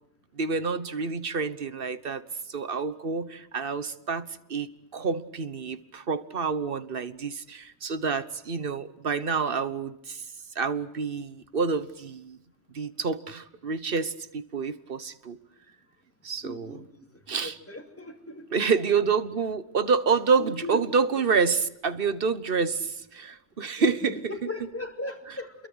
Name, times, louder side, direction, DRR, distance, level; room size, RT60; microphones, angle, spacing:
voice 1, 0.4-10.2 10.5-12.4 12.7-15.4 16.2-16.8 17.3-17.5 18.5-24.2, right 5 dB, 55° right, 14 dB, 1.4 m, -28 dB
voice 2, 16.4-16.9 17.4-18.5 20.4-20.8 23.8-25.5, left 1 dB, 10° left, 3 dB, 2.9 m, -38 dB
28.5 x 22.5 x 8.0 m, 0.79 s
omnidirectional pair, 1.2 m